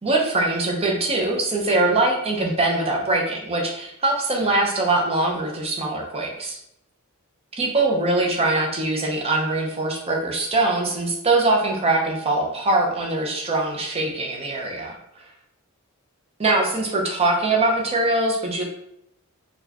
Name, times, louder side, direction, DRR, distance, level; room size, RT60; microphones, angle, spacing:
voice 1, 0.0-6.6 7.6-15.0 16.4-18.6, right 2 dB, 25° right, 0 dB, 0.6 m, -22 dB
4.3 x 2.3 x 2.8 m, 0.77 s
head